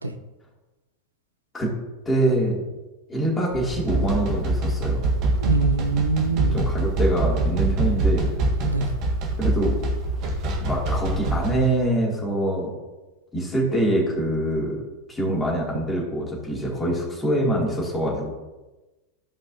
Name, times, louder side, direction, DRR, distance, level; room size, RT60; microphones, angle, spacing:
voice 1, 2.0-2.6 3.1-5.0 6.3-8.3 9.4-9.7 10.6-12.7 13.3-14.8 15.1-18.3, right 1 dB, 15° left, -4 dB, 2.8 m, -24 dB
sound 1, 3.5-11.7, right 2 dB, 40° right, 1.6 m, -24 dB
voice 2, 5.4-6.7 8.6-8.9, right 4 dB, 80° right, 8 dB, 0.6 m, -24 dB
13.5 x 5.2 x 2.8 m, 1.1 s
figure-of-eight pair, 90°, 0 cm